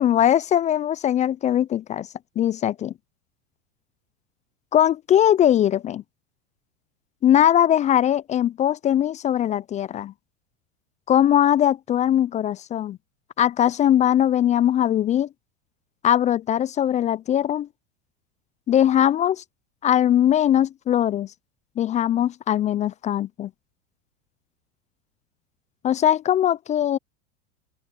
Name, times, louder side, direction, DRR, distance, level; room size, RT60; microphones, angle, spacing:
voice 1, 0.0-2.1 2.4-2.9 4.7-6.0 7.2-10.1 11.1-13.0 13.4-15.3 16.0-17.7 18.7-19.4 19.8-21.3 21.8-23.5 25.8-27.0, left 10 dB, 20° left, 0.4 m, -20 dB
open air
hypercardioid pair, 95°, 40 cm